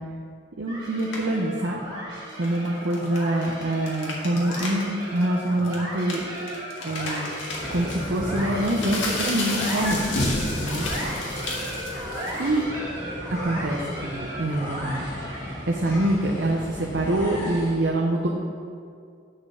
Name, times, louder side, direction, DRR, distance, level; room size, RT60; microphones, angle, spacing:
voice 1, 0.6-1.8 2.4-6.2 6.8-10.4 10.6-10.9 12.4-12.6 13.3-15.1 15.7-18.3, right 1 dB, 65° right, -1 dB, 0.7 m, -25 dB
sound 1, 0.7-15.8, right 1 dB, 25° right, 2.2 m, -36 dB
sound 2, 1.0-1.4 2.3-4.8 5.2-5.3 5.6-12.6, left 2 dB, 85° left, 1.7 m, -31 dB
sound 3, 7.6-17.8, left 1 dB, 15° left, 1.6 m, -36 dB
6.7 x 5.2 x 7.1 m, 2.3 s
head